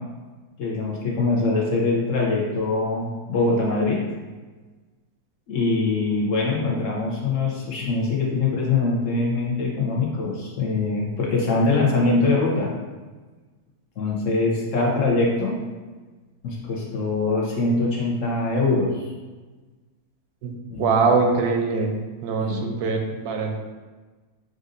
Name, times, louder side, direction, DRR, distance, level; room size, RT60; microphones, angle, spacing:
voice 1, 0.6-4.0 5.5-12.7 14.0-15.6 16.4-19.1 20.7-21.0 22.4-22.8, left 3 dB, 60° left, -3 dB, 1.0 m, -23 dB
voice 2, 20.4-21.9 22.2-23.5, right 4 dB, 80° right, 2 dB, 1.1 m, -23 dB
6.2 x 2.6 x 2.5 m, 1.3 s
omnidirectional pair, 1.7 m